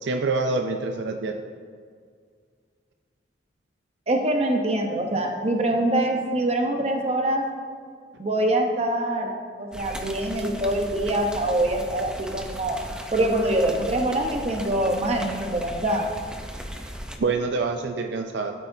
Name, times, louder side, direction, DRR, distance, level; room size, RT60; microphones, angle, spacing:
voice 1, 0.0-1.4 17.2-18.5, right 3 dB, 70° right, 5 dB, 0.4 m, -26 dB
voice 2, 4.1-7.4 8.2-12.8 13.1-16.1, right 1 dB, 35° right, 2 dB, 0.9 m, -24 dB
sound 1, 9.7-17.2, equal, 5° right, 0.5 m, -37 dB
13.0 x 8.4 x 2.7 m, 2.1 s
head